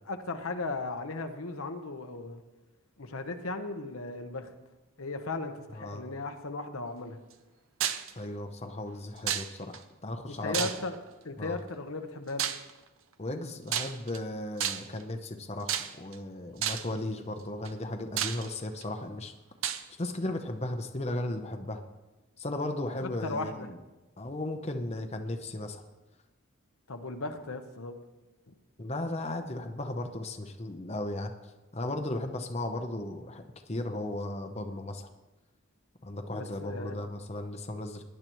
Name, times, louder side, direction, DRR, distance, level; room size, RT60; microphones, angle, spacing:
voice 1, 0.0-2.4 3.0-4.5 5.0-7.2 10.3-11.0 11.2-12.5 23.0-23.7 26.9-28.0 28.5-28.6 36.3-36.9, left 3 dB, 80° left, 6 dB, 1.1 m, -36 dB
voice 2, 5.8-6.1 8.2-10.7 11.4-11.6 13.2-19.3 20.0-21.8 22.4-23.8 24.2-25.8 28.8-31.3 31.7-35.1 36.0-38.0, left 1 dB, 30° left, 5 dB, 0.8 m, -36 dB
sound 1, 7.8-8.1 9.3-9.8 10.5-11.1 12.4-12.7 13.7-14.2 14.6-15.0 15.7-16.1 16.6-17.0 17.6-17.7 18.2-18.8 19.6-19.8, right 9 dB, 70° right, 0.7 m, -31 dB
18.5 x 10.5 x 3.1 m, 1.1 s
head